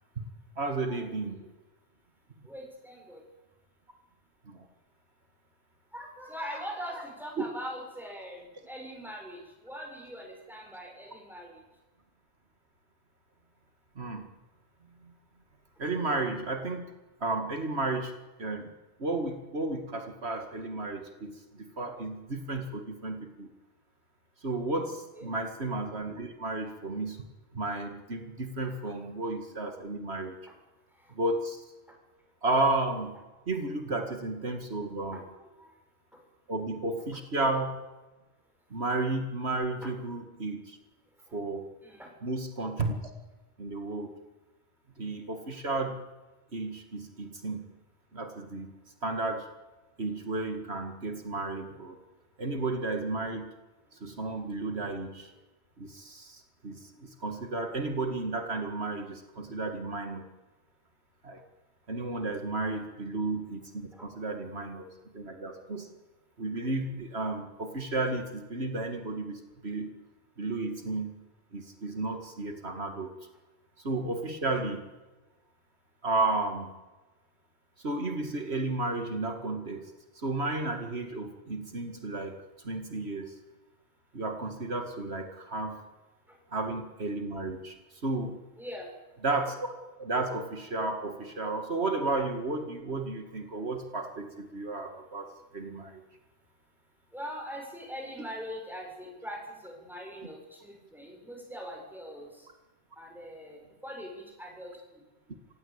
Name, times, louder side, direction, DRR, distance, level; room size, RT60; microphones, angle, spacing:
voice 1, 0.6-1.5 4.5-4.6 7.4-7.5 14.0-14.3 15.8-16.9 17.2-18.1 18.4-18.7 19.0-23.5 24.4-27.2 27.5-30.4 31.2-31.6 32.4-33.2 33.5-35.2 36.5-37.8 38.7-40.8 41.3-41.7 42.2-43.0 43.6-44.1 45.0-46.0 46.5-47.7 48.1-48.7 49.0-49.5 50.0-52.0 52.4-53.5 54.0-55.3 55.8-60.3 61.2-61.4 61.9-65.9 66.4-69.9 70.4-71.2 71.5-73.1 73.8-74.9 76.0-76.7 77.8-83.3 84.1-85.8 86.5-87.8 88.0-88.4 89.2-89.6 90.0-95.3 95.5-96.0, right 2 dB, 75° right, 5 dB, 2.5 m, -33 dB
voice 2, 2.4-3.2 5.9-11.6 25.2-25.3 30.9-31.1 35.1-35.7 36.1-36.2 39.8-39.9 41.3-41.4 41.8-42.2 54.2-54.3 63.9-64.1 86.3-86.4 88.6-88.9 97.1-102.5 103.0-105.0, equal, ahead, 0 dB, 7.3 m, -42 dB
28.0 x 16.5 x 8.8 m, 1.2 s
omnidirectional pair, 1.1 m